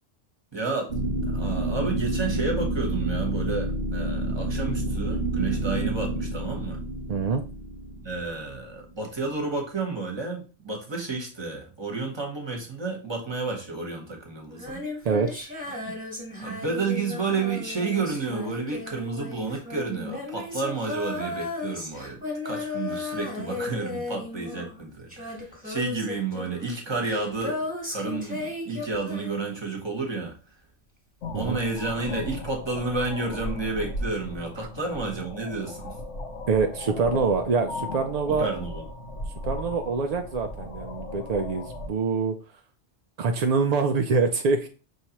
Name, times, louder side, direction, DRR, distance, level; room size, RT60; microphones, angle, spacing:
voice 1, 0.5-0.9 1.3-6.8 8.0-14.8 15.8-15.9 16.4-27.6 27.9-30.3 31.3-35.9 38.3-38.9, right 3 dB, 25° right, 1.1 m, -31 dB
sound 1, 0.9-8.8, right 1 dB, 50° right, 0.9 m, -29 dB
voice 2, 7.1-7.4 15.0-15.3 31.3-31.6 34.6-34.7 36.5-38.5 39.4-42.3 43.2-44.7, right 4 dB, 70° right, 0.4 m, -25 dB
Female singing, 14.5-29.9 31.4-31.5, left 3 dB, 5° right, 1.3 m, -35 dB
sound 2, 31.2-41.9, left 2 dB, 90° left, 1.2 m, -36 dB
5.5 x 3.2 x 2.9 m
omnidirectional pair, 1.2 m